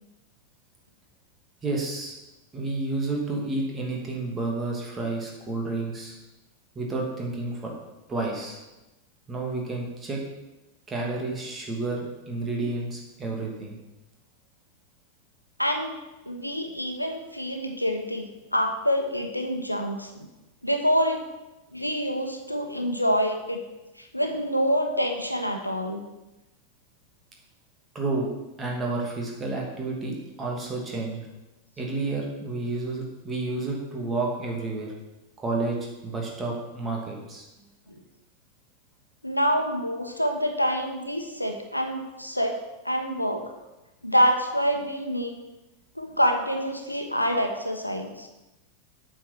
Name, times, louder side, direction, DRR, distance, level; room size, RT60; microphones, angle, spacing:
voice 1, 1.6-2.2 2.5-6.1 6.7-7.7 8.1-8.6 9.3-10.2 10.9-13.8 27.9-28.3 28.6-31.3 31.8-34.9 35.4-35.8 36.0-37.4, right 2 dB, 20° right, -1 dB, 2.7 m, -30 dB
voice 2, 15.6-15.9 16.3-20.3 20.6-21.2 21.7-23.6 24.0-26.0 37.9-38.0 39.2-42.6 42.8-43.5 44.0-45.3 46.0-48.3, equal, 90° left, 4 dB, 1.1 m, -26 dB
8.6 x 6.9 x 6.0 m, 1.0 s
figure-of-eight pair, 90°, 0 cm